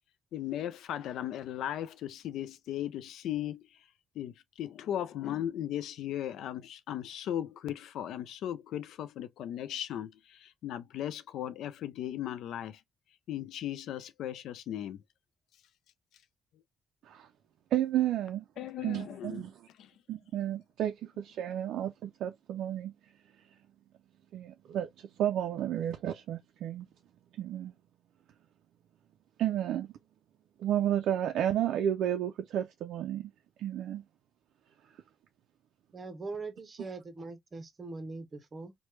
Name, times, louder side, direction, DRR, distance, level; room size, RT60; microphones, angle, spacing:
voice 1, 0.3-3.7 4.2-12.8 13.3-15.0 18.6-19.4 19.8-19.9, left 11 dB, 80° left, 0.4 m, -37 dB
voice 2, 17.7-18.4 18.8-19.5 20.1-22.9 24.3-26.9 27.4-27.7 29.4-29.9 30.6-33.3 33.6-34.0, right 11 dB, 80° right, 0.3 m, -32 dB
voice 3, 35.9-38.7, right 3 dB, 35° right, 0.7 m, -41 dB
3.1 x 2.1 x 3.0 m
cardioid pair, 90°, 0 cm